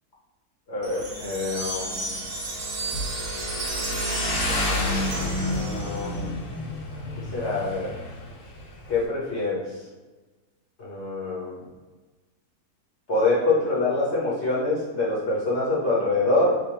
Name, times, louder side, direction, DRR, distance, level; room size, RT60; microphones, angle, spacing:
voice 1, 0.7-2.1 4.4-6.4 7.3-7.9 8.9-9.6 10.8-11.6 13.1-16.6, left 2 dB, 45° left, -7 dB, 1.3 m, -26 dB
Motorcycle, 0.8-9.1, left 1 dB, 70° left, 1.3 m, -31 dB
Wind chime, 0.8-6.2, right 3 dB, 65° right, 0.5 m, -34 dB
3.6 x 3.3 x 4.5 m, 1.2 s
omnidirectional pair, 1.7 m